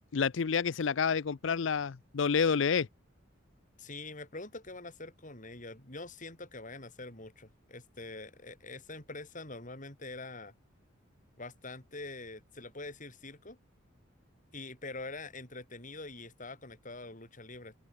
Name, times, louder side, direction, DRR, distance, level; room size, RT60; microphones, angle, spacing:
voice 1, 0.1-2.9, left 6 dB, 65° left, 0.5 m, -29 dB
voice 2, 3.8-10.5 11.4-13.6 14.5-17.7, left 2 dB, 40° left, 5.4 m, -45 dB
open air
head